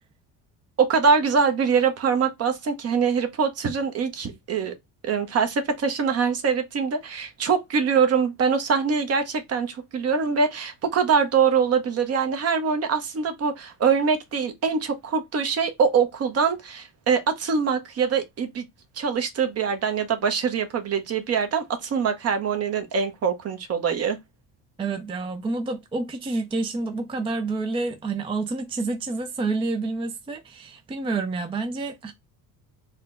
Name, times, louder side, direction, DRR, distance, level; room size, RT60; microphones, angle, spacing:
voice 1, 0.8-4.7 5.0-18.6 19.0-24.2, right 6 dB, 40° right, 0.9 m, -23 dB
voice 2, 24.8-32.1, right 3 dB, 15° right, 0.4 m, -28 dB
4.2 x 2.2 x 3.7 m
cardioid pair, 120°, 36 cm